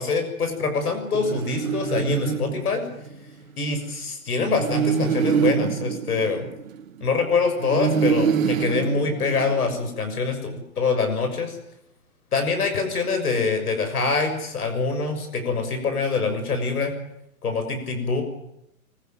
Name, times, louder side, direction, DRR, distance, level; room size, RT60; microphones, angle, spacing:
voice 1, 0.0-2.8 3.6-6.5 7.0-11.6 12.3-16.9 17.4-18.2, left 4 dB, 85° left, 6 dB, 6.7 m, -25 dB
sound 1, 1.1-3.2 4.4-7.1 7.6-9.8, right 7 dB, 65° right, 3.4 m, -25 dB
24.5 x 16.5 x 9.0 m, 0.82 s
hypercardioid pair, 160°, 44 cm